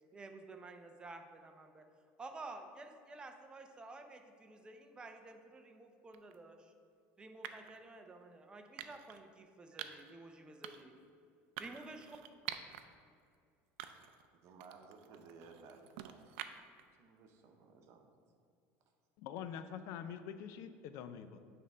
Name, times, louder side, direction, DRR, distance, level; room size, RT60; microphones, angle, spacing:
voice 1, 0.1-1.8 2.2-6.7 7.2-10.9 11.6-12.2, right 2 dB, 15° right, 5 dB, 0.6 m, -51 dB
sound 1, 6.1-6.4 7.4-7.8 8.8-9.2 9.8-10.1 10.6-11.0 11.6-12.8 13.3-13.4 13.8-14.3 14.6-16.8, right 11 dB, 85° right, 0.4 m, -47 dB
voice 2, 14.4-16.3 17.0-18.1, right 4 dB, 55° right, 4 dB, 0.9 m, -57 dB
voice 3, 19.2-21.4, left 8 dB, 65° left, 10 dB, 0.4 m, -45 dB
8.5 x 3.6 x 5.4 m, 2.2 s
cardioid pair, 135°, 6 cm